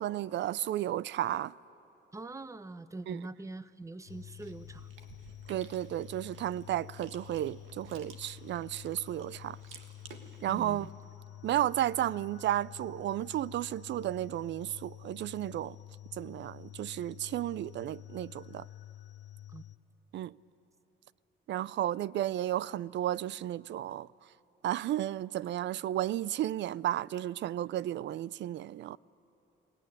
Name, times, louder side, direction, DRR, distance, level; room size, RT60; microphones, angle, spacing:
voice 1, 0.0-1.5 3.1-3.2 5.5-9.6 10.4-10.9 11.4-15.8 16.2-18.7 20.1-20.3 21.5-24.1 24.6-29.0, right 12 dB, 65° right, 0.4 m, -33 dB
voice 2, 2.1-4.9 10.5-10.9 19.5-19.6, right 2 dB, 15° right, 0.8 m, -43 dB
Chewing mastication, 4.0-10.9, right 5 dB, 90° right, 1.7 m, -55 dB
sound 1, 4.1-19.8, left 13 dB, 65° left, 0.8 m, -49 dB
23.5 x 18.0 x 9.8 m
cardioid pair, 90°, 20 cm